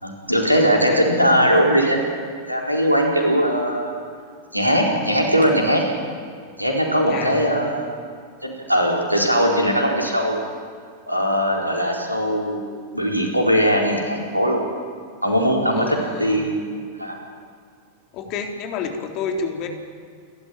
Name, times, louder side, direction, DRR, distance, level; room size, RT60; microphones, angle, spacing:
voice 1, 0.0-2.1 2.5-3.9 4.5-5.8 6.6-8.0 8.4-10.4 11.1-12.6 12.9-14.6 15.2-17.2, equal, 90° right, 0 dB, 4.4 m, -20 dB
voice 2, 7.0-7.5 15.7-16.5 18.1-19.7, left 5 dB, 40° left, 3 dB, 3.6 m, -29 dB
28.5 x 13.5 x 9.3 m, 2.1 s
figure-of-eight pair, 90°, 0 cm